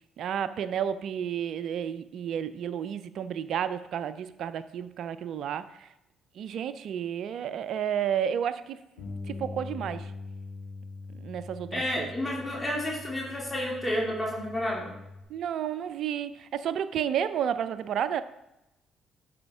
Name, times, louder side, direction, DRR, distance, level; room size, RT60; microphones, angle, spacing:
voice 1, 0.2-5.9 6.4-8.8 9.3-10.1 11.1-12.1 15.3-18.2, right 9 dB, 60° right, 14 dB, 0.4 m, -31 dB
Bass guitar, 9.0-15.2, left 3 dB, 80° left, 2.2 m, -42 dB
voice 2, 11.7-14.9, left 1 dB, 20° left, -3 dB, 2.4 m, -30 dB
11.5 x 5.0 x 3.5 m, 0.89 s
hypercardioid pair, 45°, 0 cm